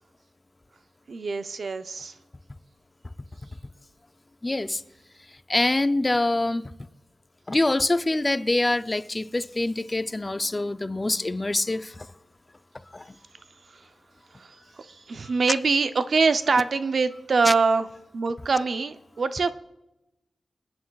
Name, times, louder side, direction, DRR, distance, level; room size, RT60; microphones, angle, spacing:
voice 1, 1.1-2.2 13.7-13.9 14.3-17.9 18.1-19.5, right 4 dB, 65° right, 0.5 m, -24 dB
voice 2, 4.4-4.8 5.5-6.7 7.5-12.1 12.9-13.1 17.5-17.6, left 2 dB, 25° left, 0.4 m, -25 dB
28.0 x 9.4 x 2.3 m
wide cardioid pair, 100°, 0 cm